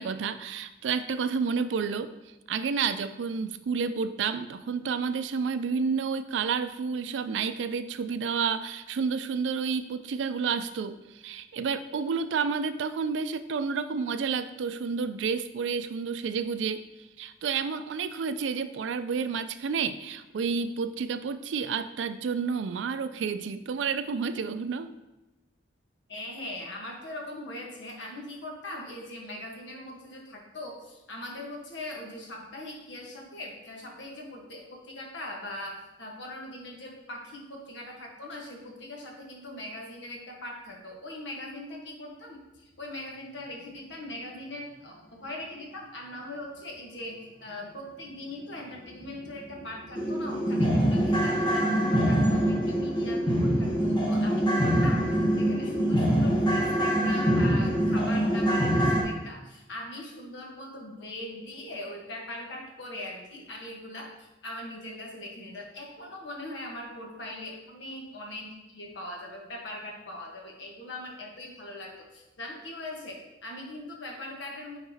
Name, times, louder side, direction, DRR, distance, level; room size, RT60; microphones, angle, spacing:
voice 1, 0.0-2.1 2.5-16.8 17.2-24.9, right 5 dB, 90° right, 11 dB, 0.4 m, -30 dB
voice 2, 26.1-64.1 64.4-74.8, left 1 dB, 80° left, 0 dB, 1.2 m, -41 dB
sound 1, 49.0-49.1 49.5-49.6 50.0-59.0, equal, 25° left, 1.0 m, -24 dB
9.3 x 4.0 x 2.8 m, 0.99 s
head